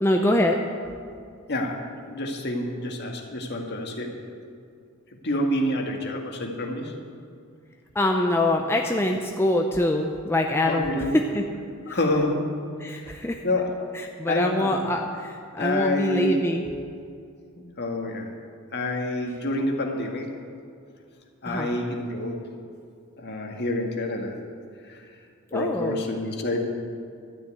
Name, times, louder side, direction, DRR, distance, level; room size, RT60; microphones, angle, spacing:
voice 1, 0.0-0.6 7.9-11.4 11.9-12.0 12.8-13.4 13.9-16.6 21.4-21.7 25.5-26.0, left 1 dB, 10° left, 2 dB, 0.6 m, -24 dB
voice 2, 1.5-4.1 5.2-6.9 10.6-11.1 11.9-12.4 13.4-13.7 14.3-14.7 15.6-16.4 17.6-18.3 18.7-20.3 21.4-22.5 23.2-24.4 24.9-25.0 25.5-26.7, left 1 dB, 50° left, 2 dB, 1.7 m, -27 dB
12.5 x 6.8 x 9.3 m, 2.4 s
head